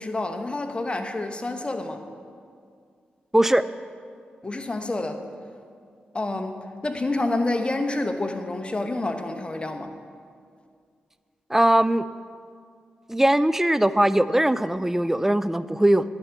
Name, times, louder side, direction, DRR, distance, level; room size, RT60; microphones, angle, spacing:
voice 1, 0.0-2.0 4.4-5.2 6.1-9.9, left 2 dB, 30° left, 6 dB, 0.9 m, -28 dB
voice 2, 3.3-3.6 11.5-12.0 13.1-16.0, right 1 dB, 10° right, 14 dB, 0.4 m, -20 dB
11.0 x 4.5 x 6.9 m, 2.2 s
supercardioid pair, 45°, 4 cm